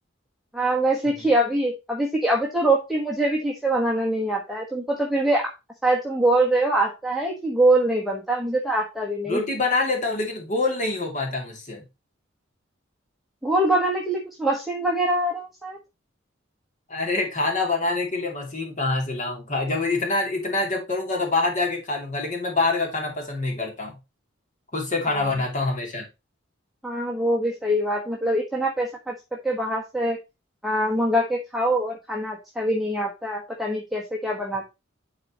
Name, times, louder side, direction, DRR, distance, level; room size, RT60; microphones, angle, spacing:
voice 1, 0.5-5.5 5.8-9.4 13.4-15.8 25.1-25.3 26.8-29.1 29.4-30.2 30.6-34.7, right 1 dB, ahead, -2 dB, 1.2 m, -24 dB
voice 2, 9.3-11.8 16.9-24.0 24.7-26.1, left 3 dB, 40° left, 1 dB, 2.6 m, -26 dB
10.5 x 4.3 x 2.9 m, 0.25 s
head